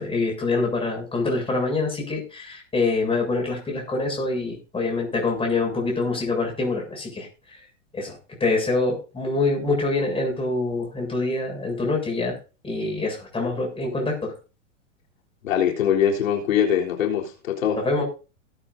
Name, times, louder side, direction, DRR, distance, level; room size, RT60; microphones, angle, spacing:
voice 1, 0.0-7.3 7.9-12.4 12.6-14.3 17.8-18.0, left 3 dB, 15° left, 7.4 m, -25 dB
voice 2, 15.4-17.8, left 9 dB, 80° left, 3.8 m, -22 dB
18.5 x 10.0 x 2.7 m
hypercardioid pair, 125°, 39 cm